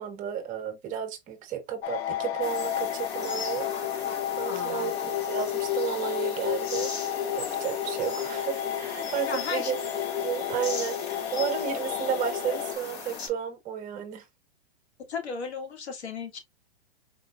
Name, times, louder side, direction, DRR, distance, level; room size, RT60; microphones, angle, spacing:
voice 1, 0.0-3.7 4.4-6.9 7.3-9.7 10.2-14.2, right 9 dB, 25° right, 0.9 m, -32 dB
sound 1, 1.8-12.8, left 11 dB, 70° left, 0.6 m, -31 dB
sound 2, 2.4-13.3, left 5 dB, 55° left, 2.9 m, -39 dB
voice 2, 4.4-4.9 9.3-9.7 15.1-16.4, left 5 dB, 90° left, 1.6 m, -35 dB
4.3 x 3.2 x 2.4 m
hypercardioid pair, 135°, 32 cm